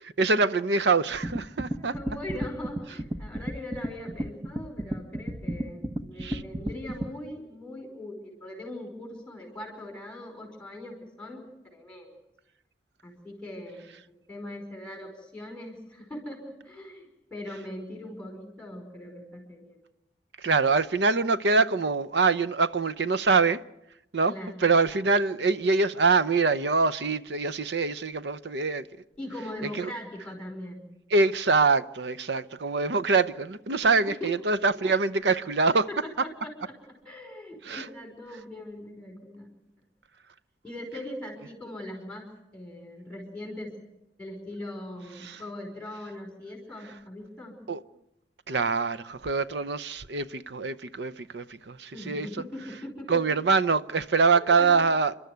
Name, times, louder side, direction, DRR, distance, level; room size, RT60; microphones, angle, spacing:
voice 1, 0.2-1.9 6.2-6.4 20.4-23.6 24.1-24.3 24.6-28.9 29.7-29.9 31.1-35.9 37.6-37.9 45.2-45.4 47.7-47.8 48.5-52.3 53.1-55.2, right 4 dB, 70° right, 0.7 m, -24 dB
sound 1, 1.2-7.1, right 1 dB, 20° right, 1.0 m, -33 dB
voice 2, 1.8-12.2 13.0-19.8 24.3-24.5 29.2-30.9 33.8-34.3 35.9-36.7 37.1-39.7 40.6-43.7 44.2-47.6 51.9-53.3 54.2-54.3 54.6-54.8, left 1 dB, 5° left, 5.1 m, -40 dB
29.0 x 12.5 x 9.4 m
head